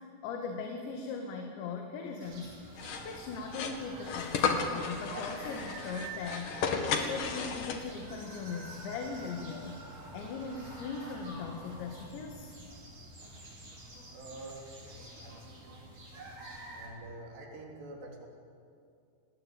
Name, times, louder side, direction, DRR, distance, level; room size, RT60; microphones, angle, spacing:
voice 1, 0.2-2.6 3.1-6.6 6.9-9.8 10.1-12.5, left 5 dB, 80° left, 3 dB, 4.0 m, -39 dB
sound 1, 2.2-16.9, right 2 dB, 45° right, 6.8 m, -48 dB
sound 2, 2.8-8.1, left 5 dB, 55° left, 2.9 m, -34 dB
voice 2, 14.1-16.1 16.7-18.3, right 2 dB, 70° right, 1 dB, 5.5 m, -47 dB
29.0 x 19.5 x 9.1 m, 2.4 s
omnidirectional pair, 5.2 m